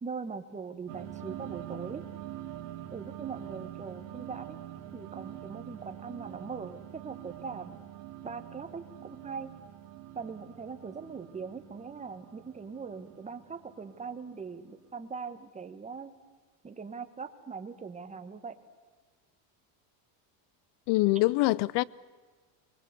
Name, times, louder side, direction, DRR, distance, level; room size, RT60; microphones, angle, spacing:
voice 1, 0.0-2.0 2.9-4.6 4.9-7.8 8.2-9.5 10.1-16.1 16.6-18.6, right 5 dB, 15° right, 1.3 m, -41 dB
sound 1, 0.9-14.9, right 12 dB, 70° right, 2.6 m, -45 dB
voice 2, 20.9-21.8, left 20 dB, 55° left, 0.6 m, -24 dB
24.0 x 20.5 x 8.2 m
cardioid pair, 135°, 49 cm